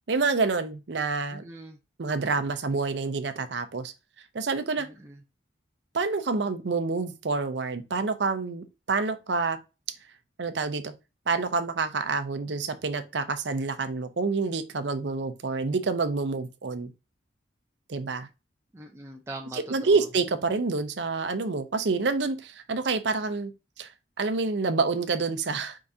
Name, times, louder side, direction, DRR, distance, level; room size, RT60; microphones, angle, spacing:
voice 1, 0.1-1.4 2.0-3.9 4.3-4.9 5.9-9.6 10.4-10.9 11.3-16.9 17.9-18.3 19.5-23.5 23.8-23.9 24.2-25.8, right 4 dB, 65° right, 0.6 m, -28 dB
voice 2, 1.3-1.8 4.8-5.2 18.7-20.0, right 2 dB, 15° right, 0.5 m, -42 dB
4.7 x 3.7 x 2.7 m
head